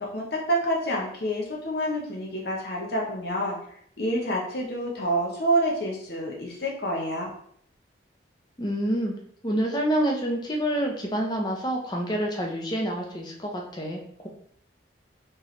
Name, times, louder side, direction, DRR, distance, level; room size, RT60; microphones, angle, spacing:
voice 1, 0.1-3.6 4.0-7.3, right 1 dB, 55° left, -2 dB, 0.8 m, -27 dB
voice 2, 8.6-9.1 9.4-14.3, equal, 20° left, 0 dB, 0.7 m, -27 dB
4.4 x 3.1 x 3.1 m, 0.66 s
head